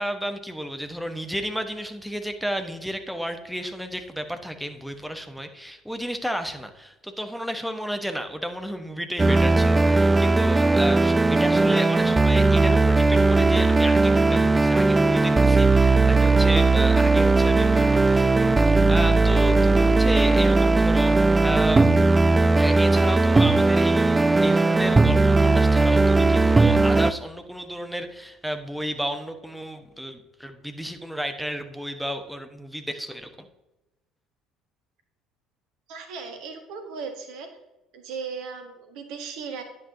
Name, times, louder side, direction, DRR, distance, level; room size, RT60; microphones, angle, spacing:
voice 1, 0.0-18.3 18.5-21.9 22.6-33.5, equal, ahead, 6 dB, 1.0 m, -32 dB
sound 1, 9.2-27.1, right 3 dB, 15° right, 0.3 m, -18 dB
voice 2, 35.9-37.5 37.9-39.6, right 5 dB, 60° right, 6 dB, 1.4 m, -36 dB
9.8 x 8.3 x 2.7 m, 0.98 s
figure-of-eight pair, 55°, 0 cm